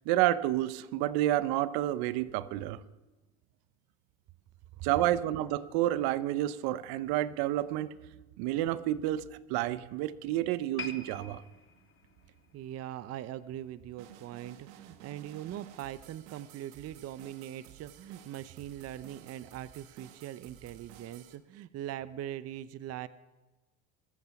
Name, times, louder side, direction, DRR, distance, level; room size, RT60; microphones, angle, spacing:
voice 1, 0.1-2.8 4.8-7.9 8.4-11.4, right 14 dB, 70° right, 16 dB, 0.8 m, -29 dB
sound 1, 10.8-14.1 14.4-14.6 15.3-15.4, left 5 dB, 30° left, 1.6 m, -46 dB
voice 2, 12.5-23.1, right 12 dB, 40° right, 15 dB, 0.6 m, -41 dB
sound 2, 14.0-21.4, right 10 dB, 85° right, 1.5 m, -53 dB
21.0 x 8.2 x 5.9 m, 1.1 s
supercardioid pair, 105°, 39 cm